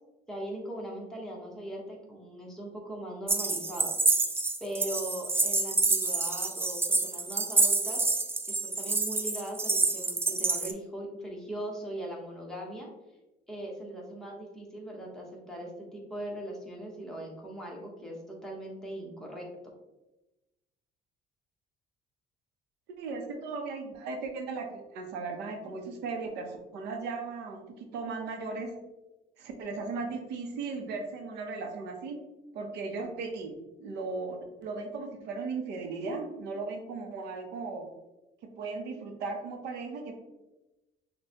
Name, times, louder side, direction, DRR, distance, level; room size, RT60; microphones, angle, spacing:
voice 1, 0.3-3.9 4.6-8.0 8.5-12.9 13.5-19.5, right 1 dB, 5° left, -3 dB, 1.1 m, -40 dB
sound 1, 3.3-10.7, right 3 dB, 15° right, 0.3 m, -27 dB
voice 2, 23.0-28.7 29.4-32.2 32.5-33.5 33.8-37.9 38.6-40.2, right 4 dB, 85° right, 3 dB, 0.7 m, -37 dB
6.1 x 2.2 x 2.8 m, 1.0 s
cardioid pair, 110°, 17 cm